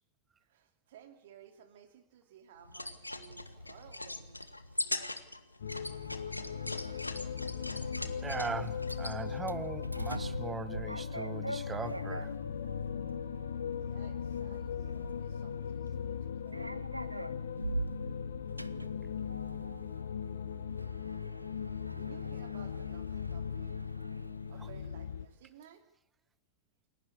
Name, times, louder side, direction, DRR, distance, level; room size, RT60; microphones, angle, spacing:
voice 1, 0.4-4.4 13.7-16.9 21.6-23.8 24.5-25.8, right 8 dB, 55° right, 8 dB, 2.6 m, -57 dB
sound 1, 2.6-9.2, left 2 dB, 85° left, 1.3 m, -40 dB
sound 2, 5.6-25.3, left 7 dB, 65° left, 1.2 m, -39 dB
Sliding door, 5.7-25.3, right 1 dB, 85° right, 0.7 m, -44 dB
voice 2, 7.8-12.3 24.6-24.7, right 5 dB, 15° right, 18 dB, 1.1 m, -40 dB
28.5 x 12.0 x 8.5 m, 0.84 s
figure-of-eight pair, 90°, 0 cm